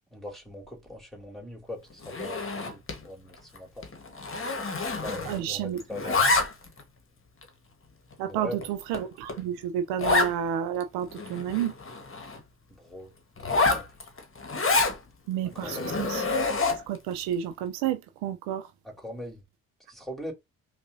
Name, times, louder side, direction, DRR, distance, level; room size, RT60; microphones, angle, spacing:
voice 1, 0.1-3.9 5.0-6.2 8.2-8.6 12.7-13.1 13.4-14.1 15.5-15.9 18.8-19.4 19.9-20.3, left 1 dB, ahead, 2.3 m, -41 dB
Zipper (clothing), 2.0-3.0 3.3-3.6 3.8-5.5 5.8-6.8 7.4-7.5 8.1-8.2 8.6-8.7 8.9-9.0 9.3-9.4 10.0-10.3 10.8-10.9 11.1-12.4 13.4-15.0 15.6-17.0, left 3 dB, 30° left, 1.3 m, -27 dB
voice 2, 5.3-5.8 8.2-11.7 15.3-16.2 16.9-18.7, right 10 dB, 70° right, 0.7 m, -30 dB
5.3 x 2.5 x 2.6 m
hypercardioid pair, 45°, 45 cm